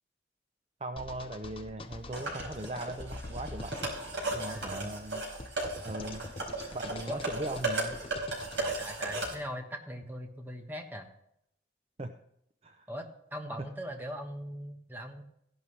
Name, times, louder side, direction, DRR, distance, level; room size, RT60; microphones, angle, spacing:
voice 1, 0.8-3.7 4.3-5.2 5.8-6.2 6.7-8.0 12.0-12.1 12.6-12.9 13.6-13.7, right 2 dB, 30° right, 7 dB, 0.5 m, -39 dB
sound 1, 1.0-8.6, left 2 dB, 30° left, 0.5 m, -45 dB
sound 2, 2.1-9.3, right 2 dB, 75° right, 4.7 m, -36 dB
voice 2, 4.4-4.9 7.1-7.2 8.6-11.1 12.9-15.2, equal, 10° right, 4 dB, 1.2 m, -40 dB
15.5 x 11.0 x 3.3 m, 0.76 s
head